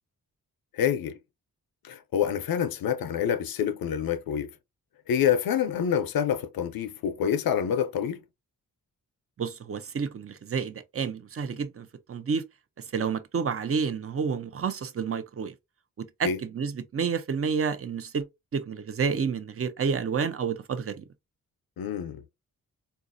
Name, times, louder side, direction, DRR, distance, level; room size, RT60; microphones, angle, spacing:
voice 1, 0.7-1.2 1.8-4.5 5.1-8.2 16.2-16.4 21.8-22.2, left 8 dB, 75° left, 0.5 m, -27 dB
voice 2, 9.4-12.4 12.8-15.5 16.0-18.3 18.5-21.0, right 6 dB, 40° right, 0.6 m, -30 dB
4.0 x 2.3 x 2.5 m
cardioid pair, 70°, 36 cm